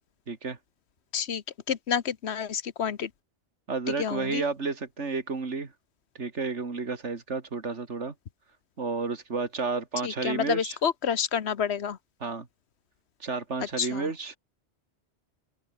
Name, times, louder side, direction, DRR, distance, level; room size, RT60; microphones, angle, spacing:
voice 1, 0.3-0.6 3.7-5.7 6.1-8.1 8.8-10.8 12.2-12.5 13.2-14.4, right 4 dB, 80° right, 2.6 m, -31 dB
voice 2, 1.1-3.1 3.9-4.4 10.0-12.0 13.8-14.1, left 7 dB, 70° left, 1.2 m, -29 dB
open air
omnidirectional pair, 1.2 m